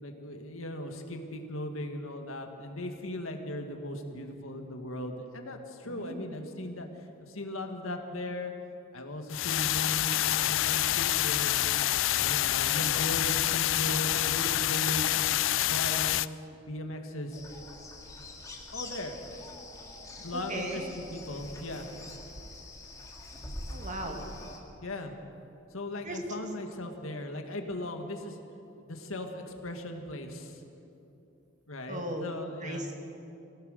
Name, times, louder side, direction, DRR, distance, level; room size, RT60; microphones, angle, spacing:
voice 1, 0.0-6.9 7.2-8.5 8.9-11.8 12.2-15.3 15.7-17.4 18.7-19.2 20.2-21.9 24.8-25.2 25.7-28.4 28.8-30.6 31.7-32.9, left 1 dB, 75° left, 4 dB, 2.0 m, -38 dB
voice 2, 5.8-6.4 20.3-20.9 23.7-24.2 26.0-26.2 31.9-32.3 32.6-33.0, right 1 dB, 35° right, 2 dB, 2.2 m, -37 dB
sound 1, 9.3-16.3, left 14 dB, 60° left, 0.4 m, -27 dB
sound 2, 17.3-24.6, left 2 dB, 15° left, 2.3 m, -44 dB
24.0 x 17.0 x 6.7 m, 2.8 s
head